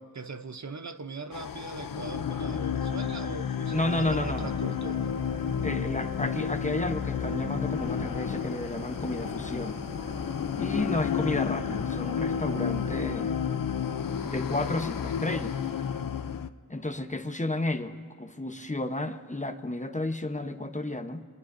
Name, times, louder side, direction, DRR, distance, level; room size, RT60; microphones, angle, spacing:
voice 1, 0.1-5.2, right 3 dB, 55° right, 10 dB, 0.7 m, -40 dB
sound 1, 1.3-16.5, left 7 dB, 75° left, 0.6 m, -31 dB
voice 2, 3.7-4.6 5.6-9.8 10.6-13.4 14.2-15.6 16.7-21.2, left 2 dB, 20° left, 7 dB, 0.8 m, -32 dB
sound 2, 3.8-13.3, equal, 15° right, 2.5 m, -44 dB
27.0 x 20.5 x 2.6 m, 2.3 s
wide cardioid pair, 70°, 34 cm